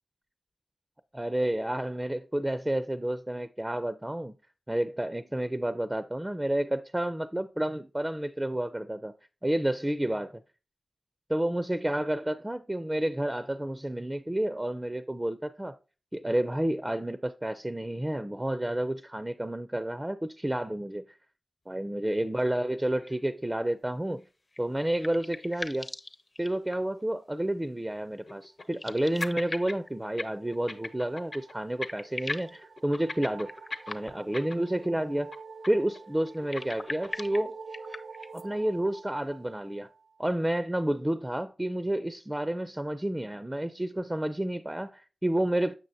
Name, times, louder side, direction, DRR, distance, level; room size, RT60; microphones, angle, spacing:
voice 1, 1.1-4.4 4.7-9.1 9.4-10.4 11.3-15.7 16.1-21.0 21.7-24.2 24.6-25.9 26.4-33.5 33.9-35.3 35.7-37.6 38.3-39.9 40.2-45.7, right 1 dB, 15° right, 0.5 m, -30 dB
sound 1, 23.0-23.2 23.5-23.6 24.2-24.3 27.5-27.6 28.3-29.0 29.2-29.8 30.0-30.2 30.5-31.5 31.8-32.0 32.3-34.9 35.2-35.4 35.6-36.0 36.2-37.4, left 3 dB, 55° left, 1.0 m, -38 dB
sound 2, 24.5-27.0 28.6-29.9 31.3-31.4 31.6-32.6 33.4-34.4 36.3-38.5, left 2 dB, 30° left, 0.8 m, -42 dB
sound 3, 29.1-40.4, right 4 dB, 80° right, 0.8 m, -48 dB
7.6 x 6.3 x 2.7 m
wide cardioid pair, 60°, 0 cm